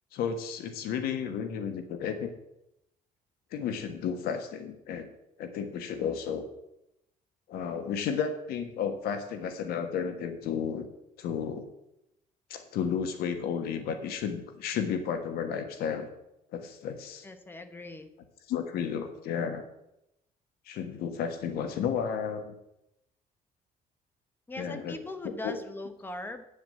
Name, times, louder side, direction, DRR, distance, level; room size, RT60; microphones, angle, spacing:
voice 1, 0.1-2.3 3.5-5.1 5.4-6.5 7.5-10.9 11.2-11.7 12.5-16.1 16.5-17.3 18.5-19.6 20.7-22.5 24.6-25.0 25.4-25.5, left 7 dB, 75° left, 7 dB, 1.5 m, -32 dB
voice 2, 17.2-18.1 24.5-26.5, left 2 dB, 15° left, 9 dB, 1.0 m, -40 dB
9.2 x 7.3 x 7.6 m, 0.84 s
cardioid pair, 155°, 16 cm